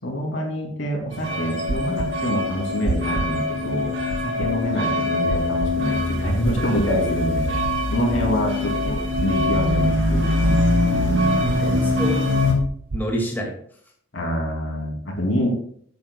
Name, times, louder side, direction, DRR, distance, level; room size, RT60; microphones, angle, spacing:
voice 1, 0.0-7.5 7.9-10.8 14.1-15.5, equal, 70° left, 0 dB, 2.8 m, -26 dB
sound 1, 1.1-12.5, left 1 dB, 65° right, 2.5 m, -23 dB
sound 2, 1.7-2.1 2.8-3.3 4.1-4.5 5.3-5.7 6.4-6.9 7.6-8.0 8.9-9.3 10.1-10.5 11.4-11.8 12.6-13.0, right 2 dB, 85° right, 0.6 m, -28 dB
voice 2, 11.0-12.2 12.9-13.9, right 1 dB, 10° left, -2 dB, 2.1 m, -29 dB
13.0 x 8.8 x 2.3 m, 0.62 s
head